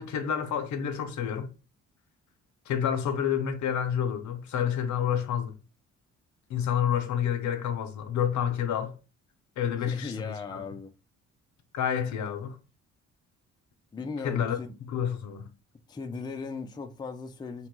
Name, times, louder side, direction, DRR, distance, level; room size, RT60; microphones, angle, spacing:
voice 1, 0.0-1.5 2.7-5.5 6.5-8.9 9.6-10.6 11.7-12.6 14.2-14.6 14.9-15.5, left 8 dB, 70° left, 0.6 m, -29 dB
voice 2, 9.8-10.9 13.9-14.7 15.9-17.7, left 4 dB, 15° left, 0.4 m, -37 dB
2.9 x 2.2 x 3.0 m
cardioid pair, 90°, 30 cm